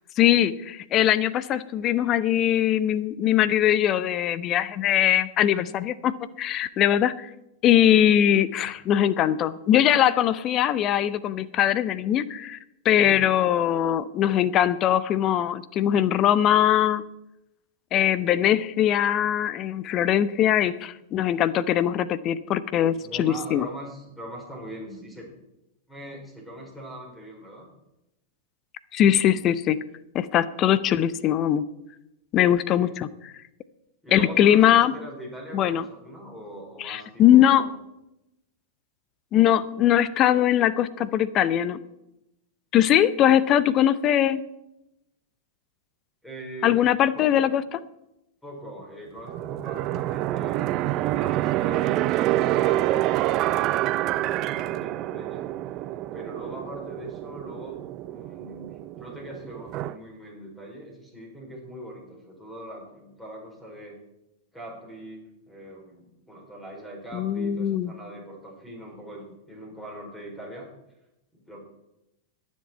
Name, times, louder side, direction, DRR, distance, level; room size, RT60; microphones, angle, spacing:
voice 1, 0.2-7.3 7.6-12.6 12.8-17.0 17.9-23.7 28.9-29.8 30.1-31.7 32.3-33.3 34.1-34.9 35.5-35.8 36.8-37.6 39.3-41.8 42.7-44.4 46.6-47.6 67.1-67.9, left 11 dB, 35° left, 16 dB, 0.7 m, -21 dB
voice 2, 13.0-14.3 23.0-25.2 25.9-27.7 32.8-32.9 34.0-37.7 46.2-46.9 47.1-47.5 48.4-55.5 56.1-64.0 64.5-70.7 71.3-71.6, right 1 dB, 10° left, -1 dB, 4.8 m, -41 dB
sound 1, 49.3-59.9, right 15 dB, 40° right, 0.5 m, -27 dB
21.5 x 7.5 x 4.6 m, 0.88 s
figure-of-eight pair, 95°, 0 cm